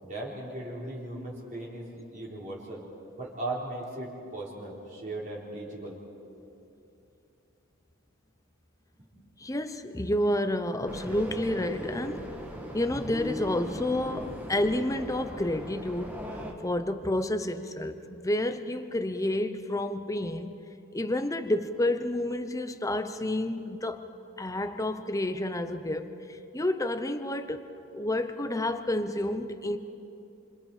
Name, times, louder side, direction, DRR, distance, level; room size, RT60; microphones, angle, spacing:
voice 1, 0.0-2.8 3.2-6.0 9.0-9.1, right 2 dB, 35° right, -5 dB, 4.1 m, -38 dB
voice 2, 9.4-12.3 12.7-16.2 16.6-20.6 20.9-24.1 24.4-27.7 27.9-29.8, left 1 dB, 15° left, 9 dB, 0.8 m, -30 dB
sound 1, 10.9-16.5, equal, 5° right, 2.1 m, -38 dB
29.0 x 27.0 x 5.0 m, 2.8 s
head